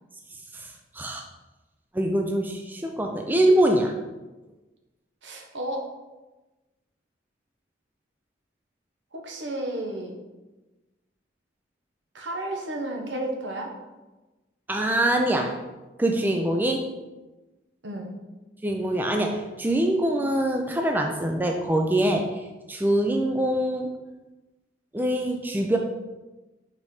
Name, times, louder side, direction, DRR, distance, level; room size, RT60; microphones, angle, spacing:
voice 1, 0.5-1.2 1.9-3.9 14.7-15.6 16.0-16.8 18.6-23.9 24.9-25.8, right 1 dB, 10° right, 3 dB, 0.4 m, -24 dB
voice 2, 5.2-5.9 9.1-10.1 12.1-13.7 17.8-18.1, right 1 dB, 75° right, 1 dB, 1.1 m, -32 dB
5.2 x 4.1 x 4.8 m, 1.1 s
head